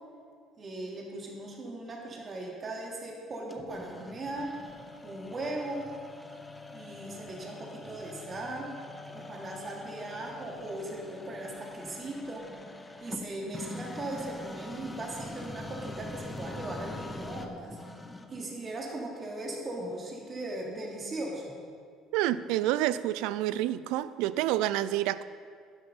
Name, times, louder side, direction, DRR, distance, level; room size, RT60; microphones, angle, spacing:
voice 1, 0.6-4.5 5.0-5.8 6.7-8.7 9.1-12.5 13.0-17.8 18.3-21.6, right 2 dB, 35° right, -1 dB, 3.1 m, -38 dB
sound 1, 3.5-18.5, left 2 dB, 15° left, 1.1 m, -44 dB
voice 2, 22.1-25.2, right 14 dB, 80° right, 16 dB, 0.4 m, -28 dB
11.5 x 11.0 x 5.4 m, 2.1 s
supercardioid pair, 85°, 0 cm